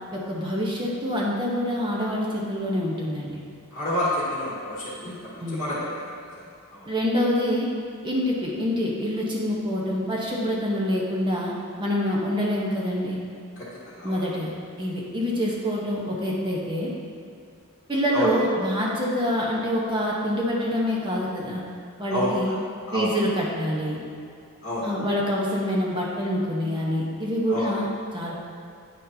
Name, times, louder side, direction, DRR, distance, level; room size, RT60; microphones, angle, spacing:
voice 1, 0.1-3.4 5.0-5.6 6.8-7.7 8.0-11.5 11.8-13.2 14.0-16.9 17.9-21.6 22.0-22.5 22.9-24.0 24.8-28.3, equal, 20° right, -4 dB, 1.0 m, -26 dB
voice 2, 3.7-6.9 13.6-14.3 18.1-18.3 22.1-22.5 22.9-23.1 24.6-24.9 27.5-27.7, left 1 dB, 40° left, -7 dB, 1.5 m, -30 dB
9.1 x 6.4 x 2.8 m, 2.5 s
head